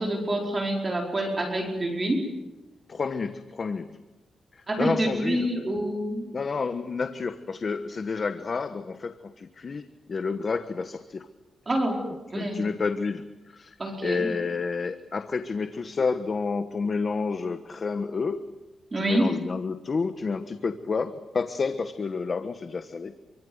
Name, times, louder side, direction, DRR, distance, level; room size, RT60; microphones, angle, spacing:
voice 1, 0.0-2.2 4.7-6.3 11.7-12.0 12.3-12.6 13.8-14.3 18.9-19.3, right 1 dB, 25° right, 1 dB, 4.9 m, -27 dB
voice 2, 2.9-3.9 4.5-5.5 6.3-11.3 12.3-13.2 13.5-18.5 19.0-23.2, left 4 dB, 35° left, 9 dB, 1.2 m, -30 dB
27.5 x 24.5 x 7.9 m, 1.1 s
wide cardioid pair, 155°, 0 cm